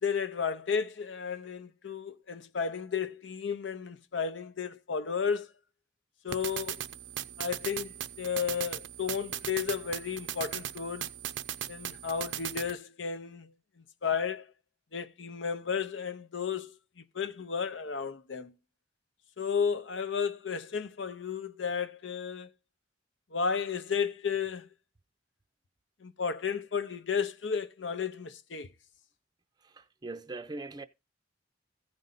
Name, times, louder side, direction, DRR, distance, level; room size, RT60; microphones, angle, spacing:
voice 1, 0.0-5.5 6.2-6.8 7.4-11.1 11.7-13.5 14.0-14.4 14.9-16.7 17.1-18.5 19.4-22.5 23.3-24.7 26.0-28.7, left 6 dB, 80° left, 0.8 m, -33 dB
sound 1, 6.3-12.7, right 10 dB, 80° right, 0.5 m, -38 dB
voice 2, 29.6-30.8, right 2 dB, 20° right, 0.5 m, -41 dB
15.0 x 5.4 x 3.9 m
head